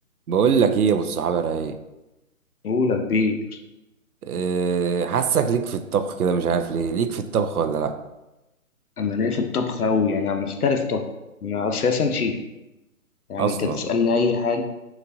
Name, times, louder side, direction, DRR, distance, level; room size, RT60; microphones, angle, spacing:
voice 1, 0.3-1.8 4.2-7.9 13.4-13.9, right 6 dB, 85° right, 8 dB, 0.6 m, -23 dB
voice 2, 2.6-3.4 9.0-11.0 11.4-12.4 13.3-14.6, left 4 dB, 90° left, 6 dB, 0.7 m, -23 dB
5.9 x 2.5 x 2.6 m, 0.98 s
figure-of-eight pair, 145°, 43 cm